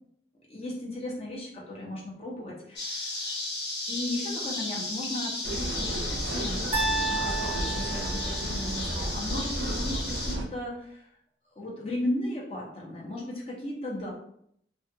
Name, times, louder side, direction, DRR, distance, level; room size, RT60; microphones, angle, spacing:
voice 1, 0.5-3.4 3.9-11.0 11.6-14.1, left 1 dB, 35° left, -4 dB, 0.7 m, -36 dB
sound 1, 2.8-10.4, left 2 dB, 70° left, 0.8 m, -34 dB
sound 2, 5.4-10.4, right 1 dB, 80° right, 0.4 m, -33 dB
sound 3, 6.7-8.9, right 2 dB, 30° right, 0.6 m, -32 dB
2.4 x 2.3 x 2.7 m, 0.68 s
head